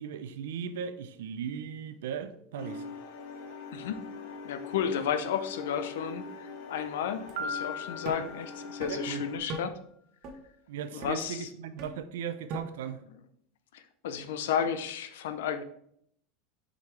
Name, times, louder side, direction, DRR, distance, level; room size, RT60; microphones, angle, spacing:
voice 1, 0.0-2.9 8.9-9.3 10.7-13.0, right 7 dB, 80° right, 0.6 m, -37 dB
sound 1, 2.6-9.4, left 4 dB, 65° left, 1.0 m, -42 dB
voice 2, 4.4-9.7 10.9-11.5 13.7-15.6, left 8 dB, 85° left, 0.7 m, -33 dB
sound 2, 7.3-7.4 8.1-8.2 8.8-8.9 9.5-9.6 10.2-10.4 11.0-11.2 11.8-11.9 12.5-12.6, right 2 dB, 40° right, 1.2 m, -37 dB
Piano, 7.4-9.3, left 1 dB, 65° right, 1.0 m, -39 dB
6.7 x 5.2 x 3.3 m
supercardioid pair, 155°, 0 cm